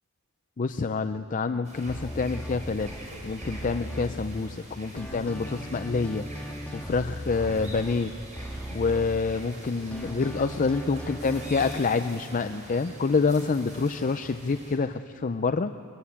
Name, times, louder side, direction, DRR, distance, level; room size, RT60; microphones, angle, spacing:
voice 1, 0.6-2.9 3.2-6.2 6.7-8.1 8.7-15.7, left 4 dB, 40° left, 10 dB, 0.5 m, -27 dB
sound 1, 1.6-14.8, right 1 dB, 35° right, 5.3 m, -45 dB
sound 2, 1.9-4.7 5.0-9.6 9.9-11.8, equal, 5° left, 1.6 m, -38 dB
22.5 x 21.0 x 8.6 m, 2.6 s
head